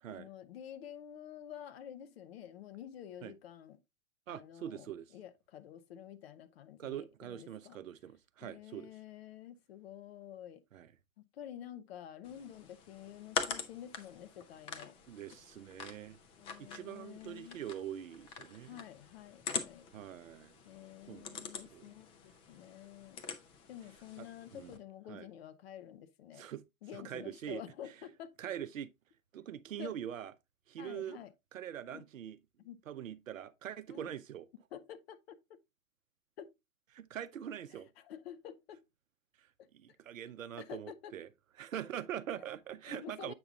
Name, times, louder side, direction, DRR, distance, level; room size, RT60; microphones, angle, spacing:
voice 1, 0.1-3.8 4.3-7.8 8.4-10.6 11.3-15.0 16.4-17.6 18.6-19.9 20.6-23.2 23.7-26.5 26.8-28.3 29.8-29.9 30.8-31.3 31.9-32.0 32.6-32.8 33.9-34.1 34.7-35.6 36.4-36.5 37.7-38.8 40.6-41.1 42.9-43.3, left 10 dB, 50° left, 0.8 m, -49 dB
voice 2, 4.3-5.1 6.8-8.9 10.7-10.9 15.1-16.2 16.6-18.8 19.9-20.6 21.1-21.9 24.2-24.3 24.5-24.8 25.1-25.3 26.3-26.6 26.9-27.6 28.4-28.9 29.3-30.3 30.7-31.2 31.5-32.4 32.9-34.5 36.9-37.9 39.4-39.5 39.7-41.3 41.6-43.3, right 10 dB, 75° right, 0.7 m, -43 dB
sound 1, 12.2-24.8, left 6 dB, 15° left, 0.4 m, -44 dB
7.8 x 5.7 x 2.6 m
figure-of-eight pair, 110°, 40 cm